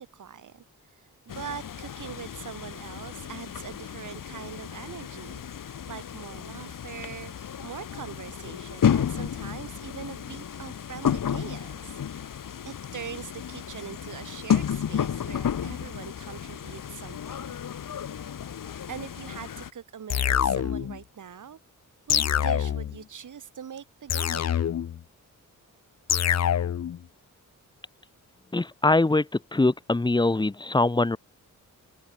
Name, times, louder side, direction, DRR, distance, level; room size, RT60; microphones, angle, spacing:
voice 1, 0.0-5.4 5.9-7.3 7.6-17.4 18.9-21.6 22.1-24.7, right 8 dB, 70° right, 4.3 m, -42 dB
sound 1, 1.3-19.7, left 8 dB, 80° left, 5.2 m, -32 dB
sound 2, 20.1-21.0 22.1-23.0 24.1-25.0 26.1-27.0, left 9 dB, 55° left, 0.7 m, -25 dB
voice 2, 28.5-31.2, left 2 dB, 15° left, 1.3 m, -23 dB
wide cardioid pair, 180°, 32 cm